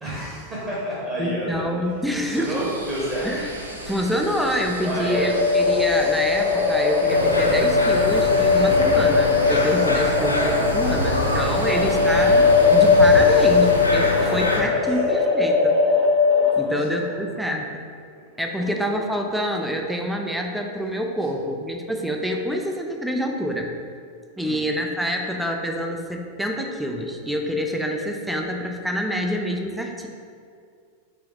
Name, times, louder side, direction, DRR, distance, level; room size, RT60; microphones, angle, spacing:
voice 1, 0.0-1.5 1.8-1.9 2.2-3.3 4.8-5.3 10.8-12.1 14.2-14.8 16.6-17.4 18.5-18.8 24.4-24.6, right 1 dB, 15° right, -8 dB, 1.0 m, -31 dB
voice 2, 1.2-2.6 3.2-3.5 3.9-15.8 16.6-17.8 18.4-23.7 24.4-30.1, equal, ahead, 2 dB, 0.4 m, -27 dB
sound 1, 2.1-14.7, right 1 dB, 85° right, 0.6 m, -37 dB
sound 2, 5.1-16.5, left 4 dB, 45° right, 1.1 m, -19 dB
sound 3, 7.1-14.6, left 1 dB, 85° left, 0.4 m, -25 dB
3.5 x 3.3 x 3.1 m, 2.2 s
figure-of-eight pair, 90°, 0 cm